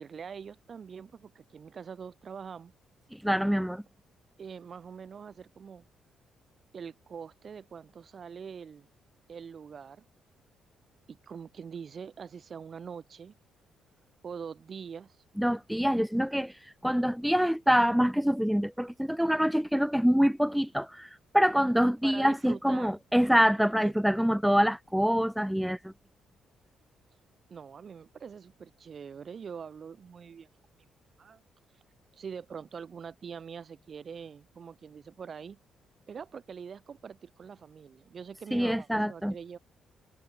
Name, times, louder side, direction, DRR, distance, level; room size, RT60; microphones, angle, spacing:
voice 1, 0.0-2.7 4.4-5.8 6.7-8.9 9.3-10.0 11.1-13.3 14.2-15.2 22.0-22.9 23.8-23.9 27.5-30.5 31.2-31.4 32.1-35.6 36.1-39.6, right 6 dB, 45° right, 4.5 m, -44 dB
voice 2, 3.1-3.8 15.4-25.9 38.5-39.3, equal, ahead, 0.5 m, -25 dB
cardioid pair, 90°, 0 cm